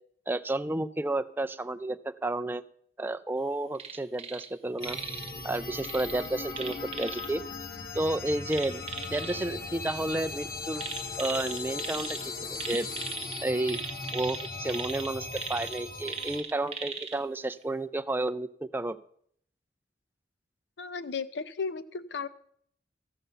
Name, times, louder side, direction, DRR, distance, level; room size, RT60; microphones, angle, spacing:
voice 1, 0.3-2.6 3.0-5.0 5.4-7.4 7.9-8.8 9.1-10.8 11.2-12.9 13.4-13.8 14.1-18.5 18.7-19.0, right 2 dB, 10° right, 10 dB, 0.4 m, -31 dB
sound 1, 3.7-4.5 4.8-5.3 5.8-7.3 8.5-9.3 10.8-12.2 12.5-17.2 17.6-17.7, right 5 dB, 35° right, 1.2 m, -38 dB
sound 2, 4.8-16.4, left 4 dB, 50° left, 1.3 m, -39 dB
sound 3, 7.8-13.1, left 3 dB, 20° left, 0.7 m, -47 dB
voice 2, 20.8-22.3, left 5 dB, 70° left, 13 dB, 0.5 m, -35 dB
14.5 x 5.7 x 6.8 m, 0.65 s
head